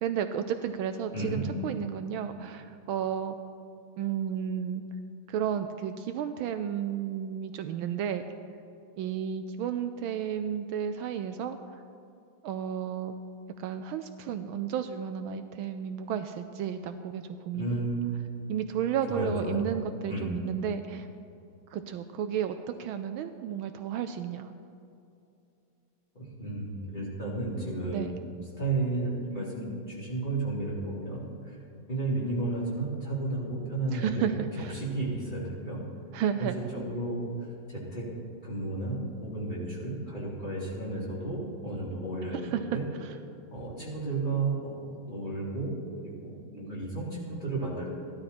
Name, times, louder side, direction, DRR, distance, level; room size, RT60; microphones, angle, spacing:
voice 1, 0.0-3.4 4.0-4.8 5.3-8.2 9.0-11.8 12.4-13.2 13.6-17.8 18.5-21.1 21.7-24.5 27.9-28.2 33.9-34.8 36.1-36.6 42.3-42.6 43.0-43.2, right 9 dB, 75° right, 8 dB, 1.4 m, -32 dB
voice 2, 17.5-18.5 19.1-19.6 20.1-20.3 26.1-28.2 28.6-31.6 31.9-34.4 34.7-35.8 36.4-37.3 37.7-38.1 38.4-42.8 43.5-45.7 46.0-47.9, right 2 dB, 20° left, -8 dB, 4.0 m, -33 dB
15.5 x 12.0 x 4.3 m, 2.6 s
omnidirectional pair, 2.3 m